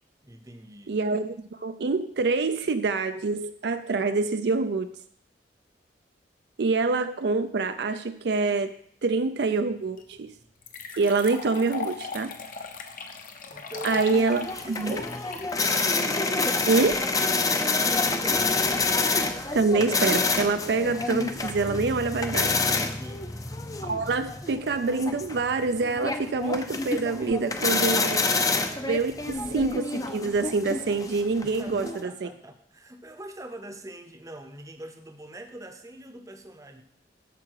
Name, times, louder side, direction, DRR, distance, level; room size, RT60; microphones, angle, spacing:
voice 1, 0.2-0.9 13.5-14.0 14.5-15.4 17.3-18.6 22.9-23.3 31.4-36.8, right 1 dB, 20° right, 7 dB, 0.7 m, -43 dB
voice 2, 0.9-4.9 6.6-8.7 9.0-10.3 11.0-12.3 13.8-15.0 16.7-16.9 19.5-22.6 23.9-28.2 28.8-32.3, right 3 dB, 65° right, 9 dB, 0.4 m, -26 dB
sound 1, 10.0-10.1 10.6-16.9, left 5 dB, 45° left, 0.9 m, -38 dB
sound 2, 14.1-32.0, left 3 dB, 20° left, 0.6 m, -28 dB
12.5 x 4.8 x 4.7 m, 0.65 s
head